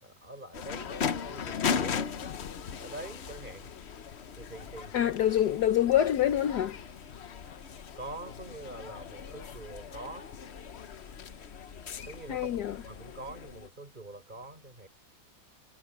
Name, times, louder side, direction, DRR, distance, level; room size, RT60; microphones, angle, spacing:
voice 1, 0.0-2.2 2.8-3.7 4.4-5.1 8.0-10.3 12.0-12.6 12.9-14.9, right 2 dB, 25° right, 5.8 m, -44 dB
sound 1, 0.5-13.7, left 7 dB, 50° left, 0.8 m, -38 dB
voice 2, 4.9-6.8 12.3-12.8, left 11 dB, 65° left, 1.3 m, -26 dB
omnidirectional pair, 2.0 m